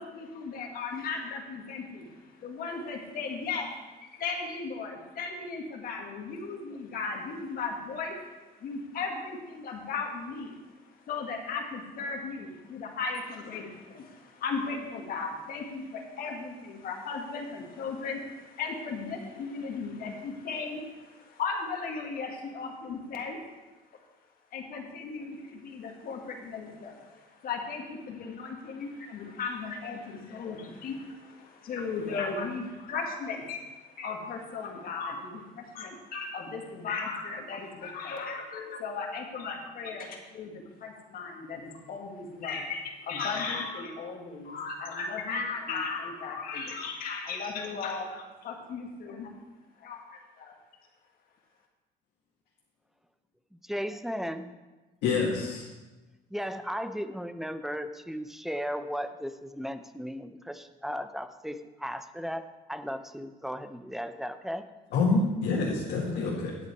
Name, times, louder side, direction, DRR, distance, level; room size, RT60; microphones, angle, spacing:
voice 1, 0.0-3.8 4.0-8.3 8.6-23.4 24.5-49.3 49.8-50.5, left 4 dB, 60° left, 1 dB, 1.8 m, -36 dB
voice 2, 53.6-54.5 56.3-64.7, equal, ahead, 10 dB, 0.6 m, -36 dB
voice 3, 55.0-55.7 64.9-66.6, left 3 dB, 80° left, -5 dB, 1.9 m, -27 dB
9.8 x 8.2 x 4.6 m, 1.2 s
cardioid pair, 110°, 17 cm